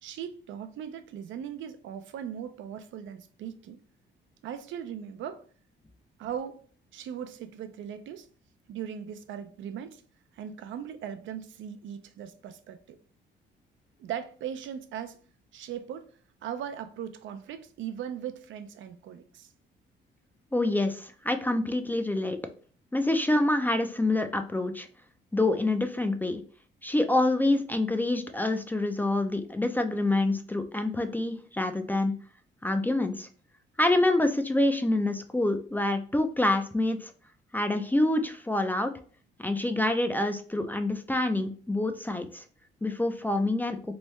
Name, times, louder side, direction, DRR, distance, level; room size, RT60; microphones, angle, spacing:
voice 1, 0.0-3.8 4.4-5.4 6.2-6.6 6.9-8.3 8.7-10.0 10.3-13.0 14.0-15.2 15.5-16.1 16.4-19.5, right 9 dB, 70° right, 0.4 m, -39 dB
voice 2, 20.5-22.4 22.9-24.9 25.3-26.4 26.8-32.1 32.6-33.3 33.8-37.1 37.5-38.9 39.4-42.4 42.8-43.8, left 2 dB, 10° left, 0.3 m, -26 dB
3.1 x 2.2 x 3.0 m
cardioid pair, 90°, 20 cm